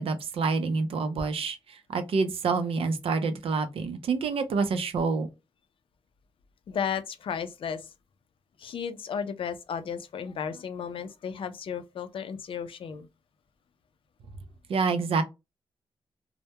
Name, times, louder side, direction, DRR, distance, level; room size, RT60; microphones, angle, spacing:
voice 1, 0.0-5.3 14.7-15.2, right 4 dB, 75° right, 0.4 m, -27 dB
voice 2, 6.7-7.9 8.6-13.1, left 7 dB, 65° left, 0.4 m, -34 dB
2.1 x 2.1 x 2.8 m
wide cardioid pair, 110°, 10 cm